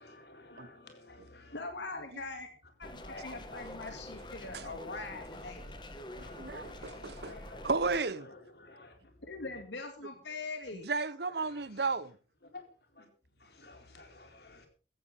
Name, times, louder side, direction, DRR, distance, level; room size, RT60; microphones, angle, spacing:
voice 1, 0.0-1.6 3.0-3.6 4.7-4.8 6.1-7.7 8.0-9.0 9.5-9.6 11.4-11.9 12.4-12.6 13.0-13.1 13.4-14.7, left 3 dB, 65° left, 4.1 m, -53 dB
voice 2, 1.5-2.5 2.8-5.7 9.2-10.9, left 3 dB, 90° left, 2.5 m, -42 dB
sound 1, 2.8-8.0, left 1 dB, 25° left, 1.7 m, -46 dB
voice 3, 3.3-4.0 4.5-4.7 6.0-7.4 7.6-8.3 10.7-12.2, right 4 dB, 70° right, 1.0 m, -34 dB
16.0 x 15.5 x 3.7 m
head